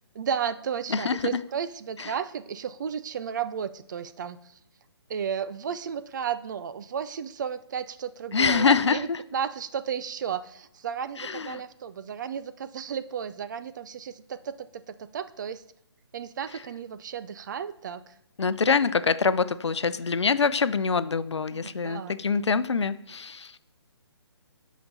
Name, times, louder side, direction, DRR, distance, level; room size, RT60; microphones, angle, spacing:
voice 1, 0.1-4.6 5.1-15.6 16.1-18.1 21.5-22.1, right 7 dB, 45° right, 13 dB, 0.5 m, -33 dB
voice 2, 8.3-9.2 11.2-11.6 18.4-23.6, left 5 dB, 80° left, 15 dB, 0.6 m, -25 dB
13.5 x 5.1 x 4.1 m, 0.78 s
figure-of-eight pair, 145°, 14 cm